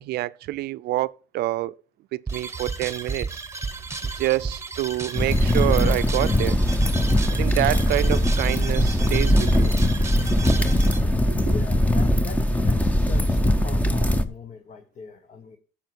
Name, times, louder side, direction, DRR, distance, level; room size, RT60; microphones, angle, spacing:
voice 1, 0.0-1.7 2.1-3.3 4.0-6.6 7.3-9.7 11.3-11.5, right 16 dB, 70° right, 0.5 m, -27 dB
sound 1, 2.3-11.0, right 4 dB, 15° right, 1.0 m, -33 dB
sound 2, 5.2-14.2, left 1 dB, 10° left, 0.8 m, -21 dB
voice 2, 11.5-15.6, left 6 dB, 45° left, 1.2 m, -41 dB
12.0 x 7.2 x 4.6 m
cardioid pair, 110°, 17 cm